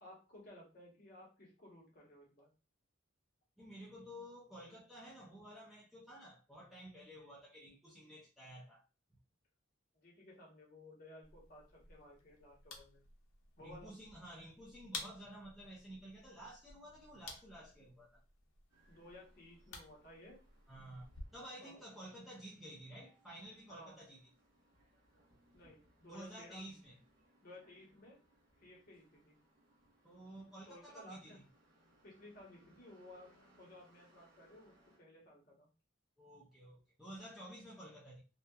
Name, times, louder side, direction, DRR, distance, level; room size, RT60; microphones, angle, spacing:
voice 1, 0.0-2.5 9.9-13.0 13.6-13.9 18.9-20.4 21.6-21.8 23.7-24.0 25.5-26.7 27.4-28.2 28.6-29.4 30.7-31.4 32.0-33.3 33.6-35.7, left 1 dB, 45° left, 0.9 m, -57 dB
voice 2, 3.6-8.8 13.6-18.2 20.7-24.2 26.1-27.0 30.0-31.4 36.2-38.2, right 1 dB, ahead, 0.4 m, -52 dB
sound 1, 11.2-21.2, left 4 dB, 80° left, 0.6 m, -54 dB
sound 2, 18.7-35.0, right 1 dB, 65° right, 1.0 m, -71 dB
2.7 x 2.2 x 2.2 m
head